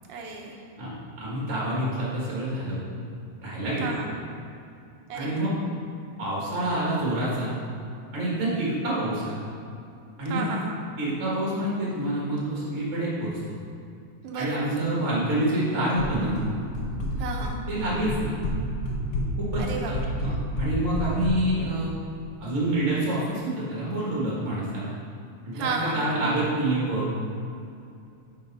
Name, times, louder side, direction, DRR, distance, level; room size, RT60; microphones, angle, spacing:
voice 1, 0.1-0.6 3.8-4.2 5.1-5.4 10.3-10.8 14.2-14.8 17.2-17.6 19.6-20.3 25.5-26.2, right 4 dB, 70° right, 0 dB, 1.4 m, -33 dB
voice 2, 0.8-2.8 3.4-4.0 5.1-5.5 6.2-7.5 8.1-9.4 10.2-10.5 11.0-13.3 14.3-16.4 17.7-18.3 19.4-21.9 22.4-24.9 25.4-27.1, right 1 dB, 35° right, -6 dB, 1.3 m, -27 dB
sound 1, 16.0-16.5 16.7-17.5 17.8-18.6 18.8-21.3, left 1 dB, 80° left, 0.9 m, -28 dB
10.5 x 5.3 x 4.0 m, 2.5 s
omnidirectional pair, 3.5 m